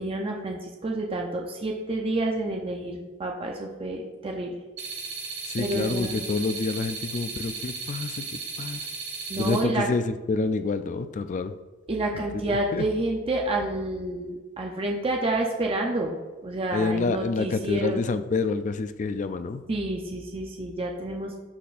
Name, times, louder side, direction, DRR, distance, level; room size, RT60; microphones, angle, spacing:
voice 1, 0.0-4.5 5.6-6.2 9.3-9.9 11.9-16.2 16.4-18.0 19.7-21.4, right 2 dB, 30° right, 1 dB, 0.6 m, -29 dB
sound 1, 4.8-9.6, right 4 dB, 55° right, 1.4 m, -35 dB
voice 2, 5.5-8.9 9.4-11.5 12.1-12.9 16.7-19.6, left 4 dB, 40° left, 10 dB, 0.3 m, -28 dB
12.0 x 4.1 x 2.5 m, 1.2 s
head